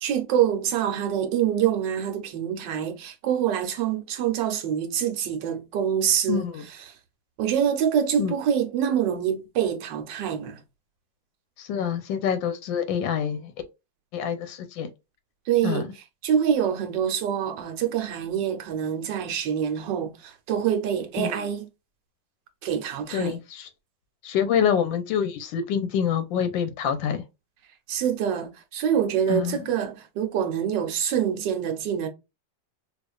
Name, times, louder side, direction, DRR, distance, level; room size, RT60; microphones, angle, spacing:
voice 1, 0.0-6.5 6.9-7.0 7.4-10.6 15.5-15.9 16.2-21.7 22.6-23.4 27.9-32.1, right 9 dB, 70° right, 1.4 m, -25 dB
voice 2, 6.3-6.6 8.2-8.3 11.6-13.5 14.1-14.9 15.6-15.9 21.2-21.5 23.1-23.7 24.2-27.2 29.3-29.7, left 8 dB, 85° left, 1.3 m, -26 dB
4.5 x 2.5 x 2.3 m
omnidirectional pair, 2.1 m